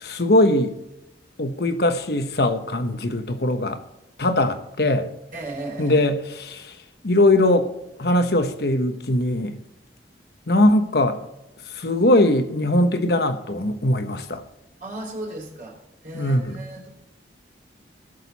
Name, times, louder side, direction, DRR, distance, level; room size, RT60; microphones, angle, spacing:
voice 1, 0.2-0.7 1.4-3.8 4.2-5.1 5.8-6.7 7.0-7.7 8.0-9.6 10.5-11.2 11.7-14.4 16.1-16.6, left 1 dB, 60° left, 1.1 m, -20 dB
voice 2, 5.3-6.0 14.8-15.8 16.0-16.9, right 2 dB, 50° right, 3.8 m, -35 dB
18.0 x 6.6 x 4.1 m
head